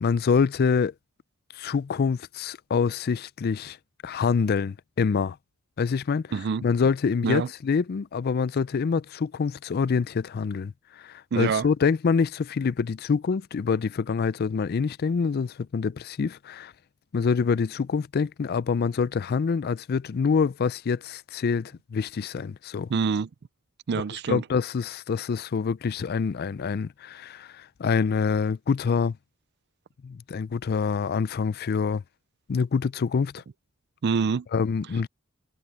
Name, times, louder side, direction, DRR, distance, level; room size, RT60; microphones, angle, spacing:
voice 1, 0.0-0.9 1.5-3.8 4.0-5.4 5.8-6.3 6.6-16.7 17.1-22.9 23.9-24.0 24.3-29.2 30.0-32.0 32.5-33.4 34.5-35.1, left 5 dB, 50° left, 0.4 m, -26 dB
voice 2, 6.3-6.6 7.2-7.5 11.3-11.7 22.9-23.3 23.9-24.4 34.0-34.5, right 5 dB, 50° right, 0.4 m, -25 dB
head